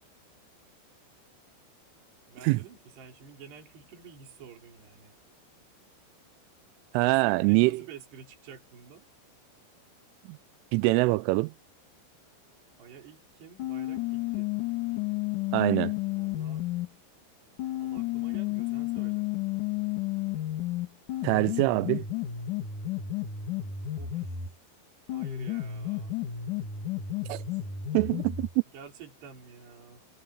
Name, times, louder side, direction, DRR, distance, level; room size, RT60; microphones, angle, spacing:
voice 1, 2.3-5.2 7.0-9.1 12.8-14.5 16.2-16.6 17.8-19.3 24.0-24.4 25.1-26.2 28.7-30.1, right 6 dB, 55° right, 7.1 m, -49 dB
voice 2, 6.9-7.8 10.3-10.4 10.7-11.5 15.5-15.9 21.2-22.1 27.3-27.4 27.9-28.5, right 23 dB, 85° right, 3.0 m, -24 dB
sound 1, 13.6-16.9 17.6-24.6 25.1-28.6, left 12 dB, 50° left, 2.9 m, -32 dB
omnidirectional pair, 5.8 m